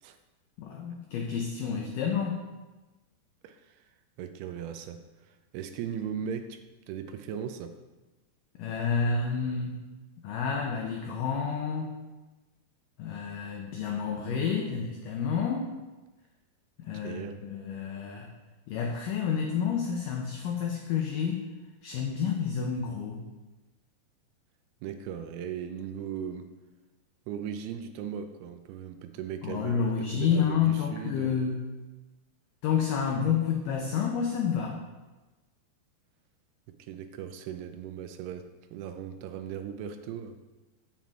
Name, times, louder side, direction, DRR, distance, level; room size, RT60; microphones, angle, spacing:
voice 1, 0.6-2.4 8.6-9.8 10.2-11.9 13.0-15.7 16.8-18.3 18.7-21.5 21.8-23.2 29.4-31.7 32.6-34.8, left 6 dB, 90° left, 1 dB, 1.9 m, -29 dB
voice 2, 3.4-3.8 4.2-6.6 6.9-7.8 17.0-17.4 24.8-26.5 27.3-31.3 36.7-40.4, right 8 dB, 85° right, 8 dB, 2.5 m, -38 dB
7.4 x 7.1 x 3.6 m, 1.2 s
omnidirectional pair, 4.7 m